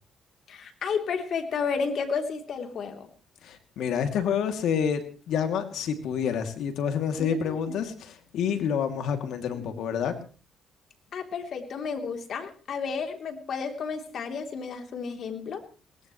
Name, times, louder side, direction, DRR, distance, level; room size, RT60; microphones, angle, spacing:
voice 1, 0.5-3.1 7.2-7.7 9.5-9.7 11.1-15.6, left 5 dB, 60° left, 5 dB, 3.2 m, -32 dB
voice 2, 3.4-10.1, left 7 dB, 80° left, 6 dB, 2.6 m, -28 dB
21.0 x 18.5 x 3.2 m, 0.36 s
cardioid pair, 90°, 0 cm